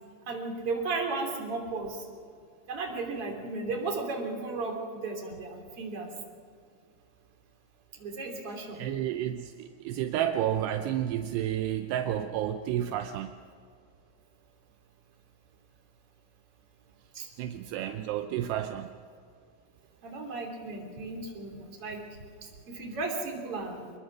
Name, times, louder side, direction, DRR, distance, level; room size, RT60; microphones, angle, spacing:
voice 1, 0.3-2.0 2.7-4.8 5.0-6.1 8.0-8.8 17.1-17.3 20.0-22.0 22.4-23.9, right 3 dB, 35° right, 1 dB, 3.4 m, -35 dB
voice 2, 8.7-13.3 17.4-18.9, right 11 dB, 80° right, 7 dB, 2.4 m, -31 dB
25.0 x 21.5 x 6.2 m, 2.3 s
omnidirectional pair, 5.6 m